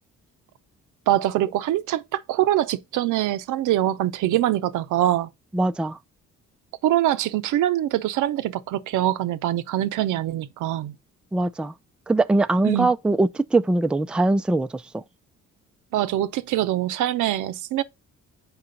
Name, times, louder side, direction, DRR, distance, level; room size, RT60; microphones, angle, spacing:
voice 1, 1.1-5.3 6.8-11.0 12.6-12.9 15.9-17.8, right 13 dB, 85° right, 0.7 m, -23 dB
voice 2, 5.5-6.0 11.3-11.7 12.1-15.0, right 2 dB, 5° right, 0.4 m, -22 dB
6.9 x 4.9 x 3.8 m
cardioid pair, 90°, 30 cm